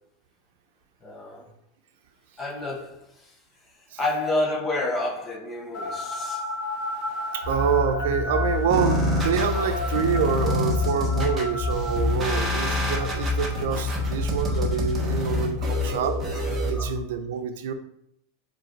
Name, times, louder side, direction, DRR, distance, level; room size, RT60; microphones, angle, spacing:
voice 1, 1.0-1.5 2.4-3.4 4.0-6.4 9.5-9.8 10.3-10.4 14.4-14.7 16.7-17.0, left 2 dB, 15° left, 2 dB, 0.8 m, -30 dB
sound 1, 5.7-15.2, left 2 dB, 40° left, 1.3 m, -34 dB
voice 2, 7.3-16.2 16.7-17.7, right 7 dB, 70° right, 7 dB, 0.7 m, -27 dB
sound 2, 7.4-17.0, left 4 dB, 70° left, 2.1 m, -28 dB
sound 3, 8.7-16.7, right 1 dB, 10° right, 1.1 m, -29 dB
5.2 x 4.1 x 4.5 m, 0.76 s
supercardioid pair, 175°, 0 cm